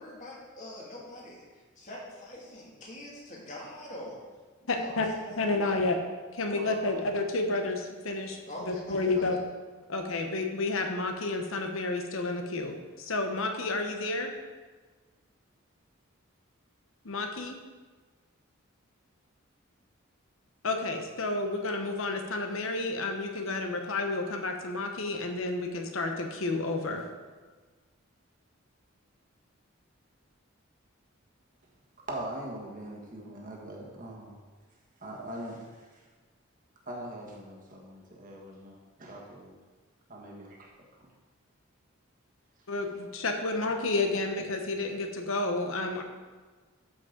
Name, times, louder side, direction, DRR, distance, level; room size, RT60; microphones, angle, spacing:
voice 1, 0.0-4.2 4.6-5.8 6.5-7.1 8.5-9.4, left 1 dB, 35° left, -4 dB, 2.3 m, -43 dB
voice 2, 4.7-5.1 5.4-6.0 6.3-8.4 8.7-9.4 9.9-14.3 17.0-17.6 20.6-27.1 42.7-46.0, left 2 dB, 75° left, 4 dB, 1.0 m, -30 dB
voice 3, 32.1-34.4 35.0-36.1 36.8-39.6 40.1-40.7 41.0-41.1 44.4-44.5, right 1 dB, 40° right, -1 dB, 1.5 m, -42 dB
13.0 x 5.2 x 3.9 m, 1.4 s
head